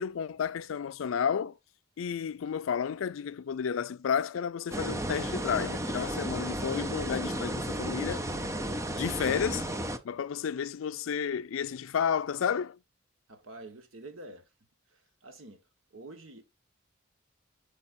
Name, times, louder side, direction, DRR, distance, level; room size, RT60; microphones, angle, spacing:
voice 1, 0.0-1.6 2.0-8.2 8.9-9.7 10.0-12.8, left 7 dB, 90° left, 0.4 m, -31 dB
sound 1, 4.7-10.0, right 1 dB, 15° right, 0.5 m, -33 dB
voice 2, 13.3-14.5 14.9-15.6 15.9-16.4, right 2 dB, 90° right, 1.4 m, -47 dB
8.5 x 5.2 x 2.6 m
head